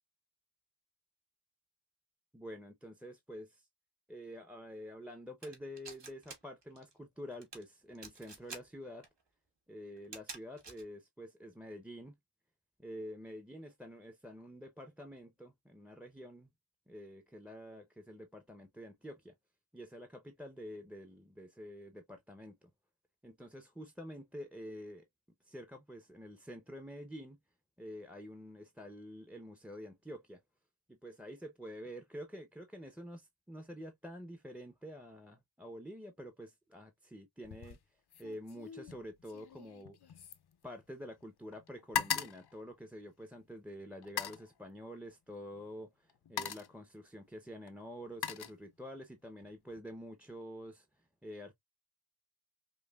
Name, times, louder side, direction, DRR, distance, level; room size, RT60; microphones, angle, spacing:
voice 1, 2.3-3.7 4.1-9.1 9.7-12.2 12.8-16.5 16.9-19.3 19.7-22.7 23.2-25.0 25.4-27.4 27.8-30.4 30.9-37.8 38.2-40.0 40.6-51.5, equal, 5° right, 0.6 m, -48 dB
sound 1, 5.4-6.4 6.6-6.9 7.3-7.6 8.0-8.6 9.0-9.1 10.0-10.8, right 4 dB, 65° right, 1.1 m, -47 dB
sound 2, 37.4-37.8 38.1-41.2 41.5-43.4 44.0-44.5 45.5-45.7 46.1-46.8 47.7-49.1 49.4-49.8, left 8 dB, 60° left, 0.5 m, -40 dB
5.2 x 2.1 x 2.2 m
wide cardioid pair, 40°, 45 cm